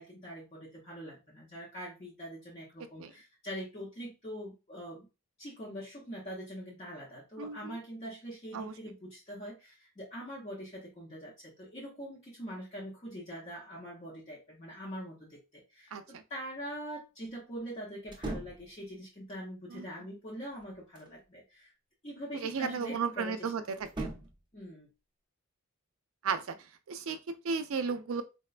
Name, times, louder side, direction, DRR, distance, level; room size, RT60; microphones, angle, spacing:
voice 1, 0.0-5.1 5.4-21.7 22.0-23.5 24.5-24.9, equal, 30° left, 0.7 m, -43 dB
voice 2, 7.4-7.8 8.5-8.7 15.9-16.2 19.7-19.9 22.3-24.1 26.2-28.2, right 5 dB, 75° right, 0.4 m, -35 dB
sound 1, 18.1-18.7 20.3-21.2 23.8-24.4, right 2 dB, 20° right, 0.6 m, -40 dB
4.0 x 2.2 x 2.3 m
head